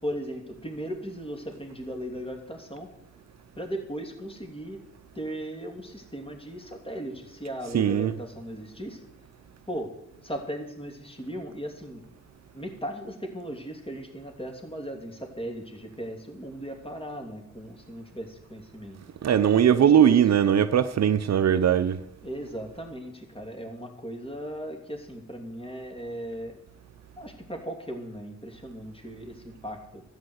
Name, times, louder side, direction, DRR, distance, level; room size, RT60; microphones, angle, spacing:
voice 1, 0.0-2.9 3.6-4.8 5.1-9.0 9.7-9.9 10.2-12.0 12.5-19.0 19.7-20.2 22.2-26.6 27.2-30.0, equal, 20° left, 3.1 m, -37 dB
voice 2, 7.7-8.1 19.2-22.0, right 9 dB, 65° right, 0.7 m, -20 dB
13.0 x 8.8 x 8.2 m
cardioid pair, 75°, 29 cm